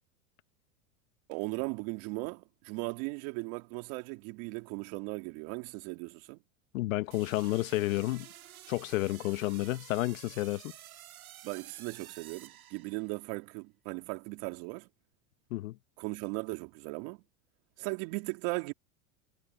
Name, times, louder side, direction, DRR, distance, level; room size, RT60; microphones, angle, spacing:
voice 1, 1.3-6.4 11.4-14.9 16.0-17.2 17.8-18.7, right 27 dB, 55° right, 2.8 m, -37 dB
voice 2, 6.7-8.3 8.7-10.7 15.5-15.7, left 18 dB, 70° left, 1.4 m, -31 dB
sound 1, 7.1-13.3, right 12 dB, 90° right, 2.2 m, -51 dB
hypercardioid pair, 120°, 41 cm